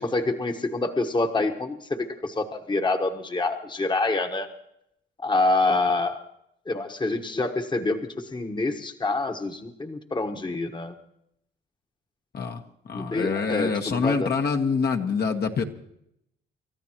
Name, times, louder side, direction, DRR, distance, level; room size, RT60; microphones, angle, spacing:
voice 1, 0.0-4.5 5.2-6.2 6.7-10.9 12.9-14.3, left 2 dB, 25° left, 5 dB, 1.3 m, -26 dB
voice 2, 12.3-15.6, left 5 dB, 55° left, 3 dB, 1.4 m, -26 dB
29.5 x 13.5 x 3.0 m, 0.76 s
cardioid pair, 90°, 20 cm